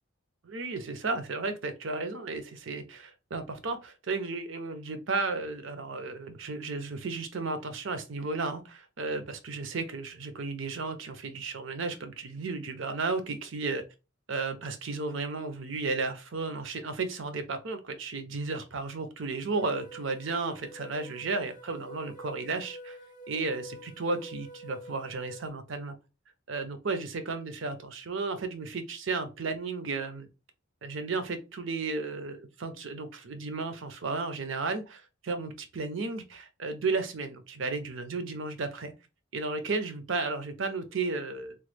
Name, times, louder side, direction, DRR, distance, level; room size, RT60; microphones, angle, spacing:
voice 1, 0.4-13.8 14.3-23.0 23.3-25.9 26.5-30.3 30.8-38.9 39.3-41.5, right 3 dB, 65° right, 0.6 m, -34 dB
sound 1, 19.5-25.5, right 1 dB, 20° left, 0.7 m, -47 dB
3.1 x 2.1 x 3.3 m
head